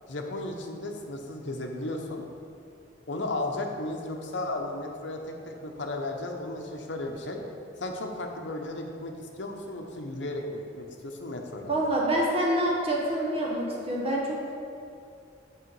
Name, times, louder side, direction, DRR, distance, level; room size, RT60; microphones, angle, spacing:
voice 1, 0.1-2.2 3.1-7.4 7.8-11.8, left 2 dB, 70° left, 2 dB, 0.8 m, -34 dB
voice 2, 11.7-14.5, right 1 dB, 30° right, -3 dB, 1.0 m, -27 dB
6.6 x 5.6 x 4.6 m, 2.4 s
head